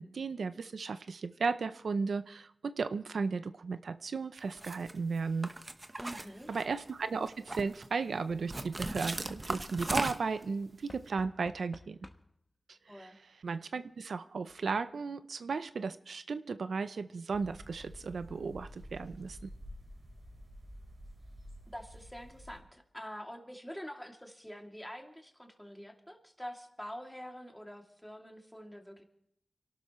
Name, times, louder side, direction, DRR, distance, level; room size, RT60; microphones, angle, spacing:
voice 1, 0.0-5.5 6.5-12.0 12.9-13.1 13.4-19.5, right 4 dB, 85° right, 11 dB, 0.5 m, -35 dB
sound 1, 4.6-4.9 5.4-6.9 7.3-7.9 8.5-10.4, right 2 dB, 35° right, 1.0 m, -37 dB
voice 2, 6.0-6.5 12.9-13.2 21.7-29.0, equal, 5° left, 2 dB, 2.6 m, -46 dB
Knock / Wood, 6.1-6.6 8.3-9.8 10.9-12.5 13.5-13.6 13.8-13.9, left 1 dB, 30° left, 1.1 m, -54 dB
sound 2, 17.3-22.6, equal, 60° right, 4.1 m, -50 dB
29.0 x 12.5 x 3.1 m, 0.75 s
wide cardioid pair, 65°, 0 cm